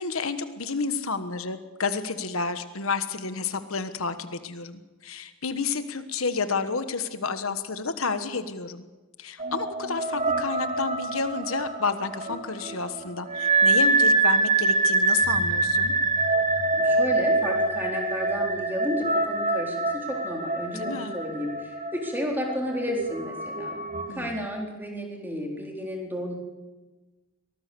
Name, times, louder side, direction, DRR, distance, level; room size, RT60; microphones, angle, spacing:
voice 1, 0.0-8.9 9.2-15.9 20.7-21.1 24.1-24.4, left 4 dB, 85° left, 10 dB, 1.4 m, -30 dB
sound 1, 9.4-24.1, right 2 dB, 35° right, 2.0 m, -25 dB
voice 2, 16.8-23.7 24.1-26.3, equal, 10° right, 0 dB, 3.9 m, -32 dB
24.0 x 18.5 x 7.0 m, 1.2 s
head